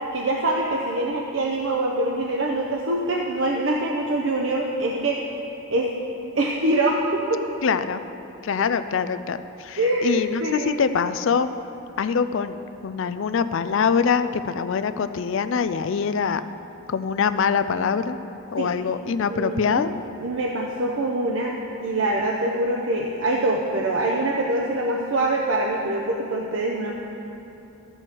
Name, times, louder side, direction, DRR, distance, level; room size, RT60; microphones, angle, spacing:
voice 1, 0.1-5.2 5.7-5.9 6.3-7.4 8.6-8.7 9.8-10.8 18.6-18.7 19.3-19.9 20.2-21.5 21.8-27.0, right 1 dB, 60° right, -2 dB, 0.7 m, -24 dB
voice 2, 7.6-8.0 8.4-11.5 12.0-16.4 16.9-18.2 18.5-19.9, left 6 dB, 60° left, 11 dB, 0.4 m, -24 dB
12.5 x 7.9 x 4.5 m, 2.9 s
head